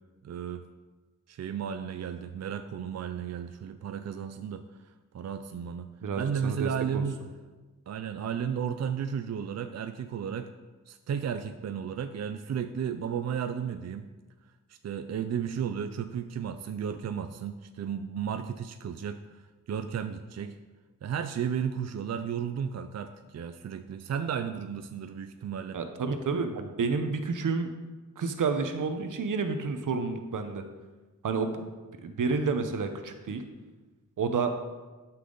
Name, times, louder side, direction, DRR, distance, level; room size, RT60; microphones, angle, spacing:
voice 1, 0.2-0.6 1.3-5.9 6.2-7.2 7.9-10.5 10.9-14.1 14.7-20.6 21.0-25.8, right 7 dB, 60° right, 8 dB, 0.5 m, -34 dB
voice 2, 6.0-7.0 25.7-27.7 28.2-30.6 31.2-31.7 32.0-33.4 34.2-34.5, right 4 dB, 85° right, 7 dB, 0.9 m, -30 dB
12.0 x 5.8 x 3.9 m, 1.3 s
wide cardioid pair, 130°, 31 cm